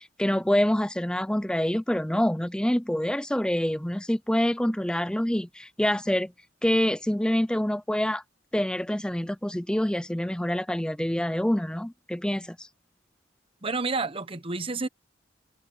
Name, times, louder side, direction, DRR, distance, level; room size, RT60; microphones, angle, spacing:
voice 1, 0.0-6.3 6.6-8.2 8.5-12.7, left 1 dB, 5° left, 0.4 m, -26 dB
voice 2, 13.6-14.9, right 3 dB, 30° right, 1.0 m, -29 dB
head